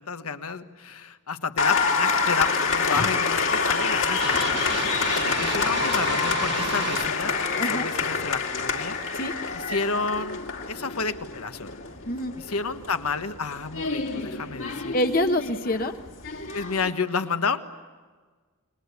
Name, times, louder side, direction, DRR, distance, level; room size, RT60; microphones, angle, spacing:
voice 1, 0.0-7.3 7.7-9.0 9.5-10.4 10.7-11.7 12.3-14.9 16.5-17.6, left 5 dB, 80° left, 8 dB, 1.4 m, -30 dB
Applause, 1.6-16.9, left 5 dB, 60° left, 2.6 m, -27 dB
sound 1, 4.2-7.1, right 6 dB, 55° right, 1.5 m, -32 dB
voice 2, 7.6-7.9 9.1-9.3 12.1-12.3 14.9-15.9, left 1 dB, 40° left, 6 dB, 1.1 m, -26 dB
29.5 x 22.0 x 8.4 m, 1.4 s
head